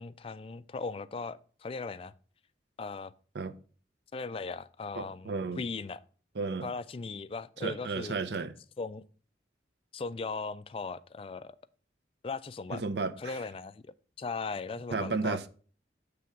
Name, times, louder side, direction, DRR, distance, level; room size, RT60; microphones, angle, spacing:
voice 1, 0.0-2.1 2.8-3.1 4.1-6.0 6.6-8.1 8.8-9.0 9.9-11.5 12.2-12.8 13.2-13.8 14.2-15.4, left 4 dB, 30° left, 0.3 m, -38 dB
voice 2, 5.0-5.6 6.4-6.7 7.6-8.5 12.7-13.4 14.9-15.5, right 4 dB, 65° right, 0.6 m, -33 dB
7.7 x 3.4 x 5.7 m
head